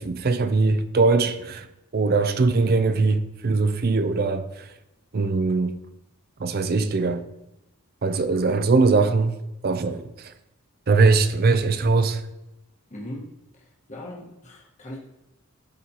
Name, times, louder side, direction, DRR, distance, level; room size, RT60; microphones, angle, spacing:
voice 1, 0.0-1.7 1.9-4.7 5.1-5.8 6.4-7.2 8.0-9.4 9.6-10.3 10.9-12.2, right 3 dB, 45° right, 0.5 m, -21 dB
voice 2, 12.9-15.0, left 1 dB, 35° left, 1.3 m, -39 dB
12.0 x 4.2 x 2.9 m
head